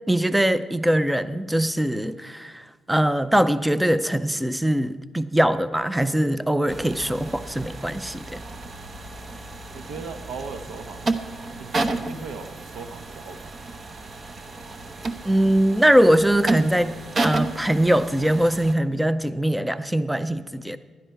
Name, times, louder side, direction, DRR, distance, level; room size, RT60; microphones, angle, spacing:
voice 1, 0.1-8.4 15.3-16.9 17.2-20.8, right 1 dB, 5° right, 13 dB, 0.5 m, -22 dB
sound 1, 6.7-18.7, right 2 dB, 40° right, 0.9 m, -32 dB
voice 2, 9.7-11.1 11.6-13.5, right 4 dB, 80° right, 9 dB, 1.0 m, -38 dB
16.0 x 11.5 x 4.6 m, 1.5 s
cardioid pair, 90°, 0 cm